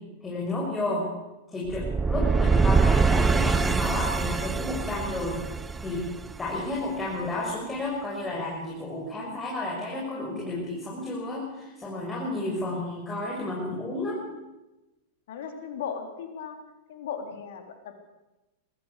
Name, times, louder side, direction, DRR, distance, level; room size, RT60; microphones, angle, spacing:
voice 1, 0.2-1.1 1.5-5.4 5.8-6.0 6.4-14.2, left 2 dB, 15° left, -5 dB, 6.5 m, -31 dB
sound 1, 1.7-6.7, right 4 dB, 15° right, 0.8 m, -24 dB
voice 2, 15.3-16.5 16.9-17.9, left 7 dB, 65° left, 6 dB, 3.6 m, -36 dB
21.5 x 14.5 x 8.3 m, 1.0 s
hypercardioid pair, 100°, 0 cm